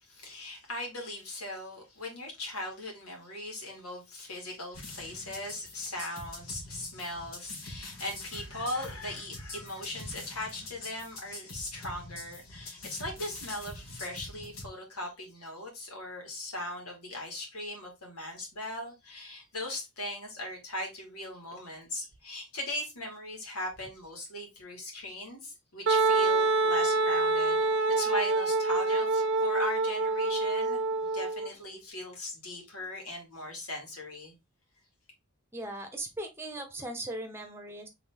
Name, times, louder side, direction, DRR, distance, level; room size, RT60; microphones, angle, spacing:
voice 1, 0.0-34.3, left 1 dB, 80° left, 2.4 m, -39 dB
sound 1, 4.7-14.7, left 2 dB, 60° left, 2.1 m, -45 dB
Wind instrument woodwind instrument, 25.9-31.5, right 3 dB, 55° right, 0.6 m, -26 dB
voice 2, 35.5-37.9, right 1 dB, 10° right, 1.0 m, -38 dB
4.0 x 3.5 x 3.5 m
head